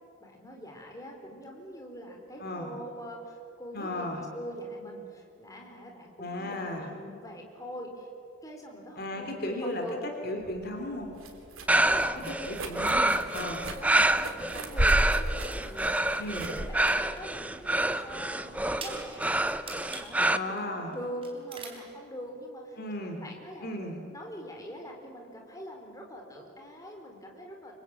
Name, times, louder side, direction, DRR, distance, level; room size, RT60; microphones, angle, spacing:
voice 1, 0.2-8.1 8.4-10.0 11.7-12.7 13.7-22.8 23.2-23.8 24.1-27.8, equal, 15° left, 1 dB, 4.1 m, -43 dB
voice 2, 2.4-2.7 3.7-4.2 6.2-6.9 9.0-11.1 12.2-13.6 16.2-16.5 20.3-20.9 22.8-23.2 23.6-24.0, left 1 dB, 50° left, 2 dB, 3.1 m, -35 dB
sound 1, 10.4-18.2, right 1 dB, 85° right, 3.3 m, -35 dB
sound 2, 11.7-20.4, right 1 dB, 5° right, 0.6 m, -27 dB
sound 3, 15.2-16.2 16.6-17.2 17.6-17.7 18.1-18.2 18.6-21.0 21.2-21.8, right 4 dB, 25° right, 4.1 m, -45 dB
27.0 x 24.5 x 8.9 m, 2.6 s
head